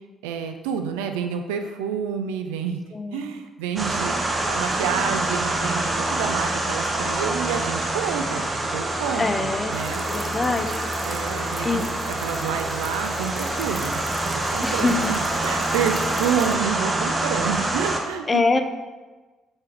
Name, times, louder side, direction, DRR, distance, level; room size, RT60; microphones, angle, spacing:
voice 1, 0.2-2.8 3.1-10.1 11.0-18.6, right 7 dB, 75° right, 6 dB, 0.3 m, -29 dB
voice 2, 2.9-3.3 9.2-9.8 10.1-10.8 11.6-11.8 14.6-15.1 18.3-18.6, left 3 dB, 30° left, 7 dB, 0.4 m, -24 dB
sound 1, 3.8-18.0, right 2 dB, 30° right, 0.7 m, -26 dB
sound 2, 9.7-16.5, left 1 dB, 10° left, 0.8 m, -43 dB
4.4 x 3.3 x 3.4 m, 1.2 s
figure-of-eight pair, 45°, 0 cm